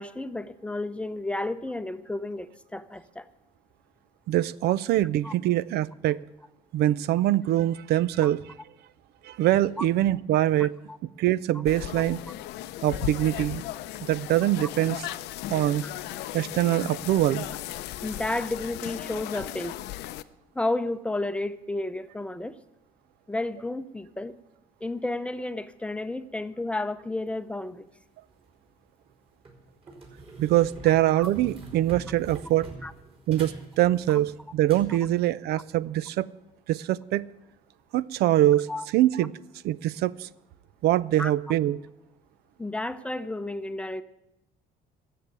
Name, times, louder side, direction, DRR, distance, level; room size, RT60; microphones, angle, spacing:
voice 1, 0.0-3.3 5.2-5.3 8.2-8.3 9.8-9.9 10.9-11.0 11.5-11.6 18.0-19.8 20.5-22.6 23.3-24.4 24.8-27.9 32.8-32.9 38.7-38.9 41.2-41.3 42.6-44.0, left 2 dB, 5° left, 12 dB, 0.6 m, -32 dB
voice 2, 4.3-6.2 6.7-8.4 9.2-10.7 11.2-12.2 12.8-13.6 14.0-15.0 15.5-15.8 16.3-17.5 30.4-32.7 33.3-36.3 36.7-37.2 37.9-39.3 39.6-40.3 40.8-41.8, right 14 dB, 70° right, 19 dB, 0.4 m, -23 dB
sound 1, 11.7-20.2, left 14 dB, 85° left, 0.6 m, -36 dB
sound 2, 28.3-28.5 29.1-29.2 29.5-34.9, right 3 dB, 35° right, 4.7 m, -44 dB
13.5 x 7.5 x 9.5 m, 0.92 s
cardioid pair, 110°, 17 cm